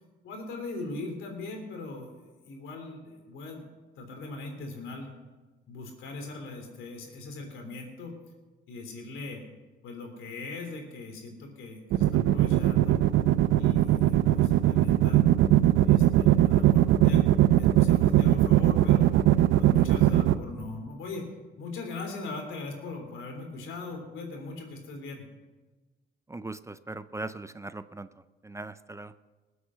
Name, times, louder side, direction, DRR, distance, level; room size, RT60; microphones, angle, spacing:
voice 1, 0.2-3.7 4.0-5.1 5.7-8.2 8.7-9.4 9.8-13.0 13.6-15.2 15.8-19.1 19.6-21.3 21.6-25.2, left 3 dB, 85° left, 3 dB, 3.4 m, -40 dB
sound 1, 11.9-20.3, right 13 dB, 85° right, 0.7 m, -20 dB
voice 2, 26.3-28.1 28.4-29.1, right 2 dB, 15° right, 13 dB, 0.5 m, -39 dB
19.5 x 8.2 x 6.3 m, 1.2 s
cardioid pair, 90°, 20 cm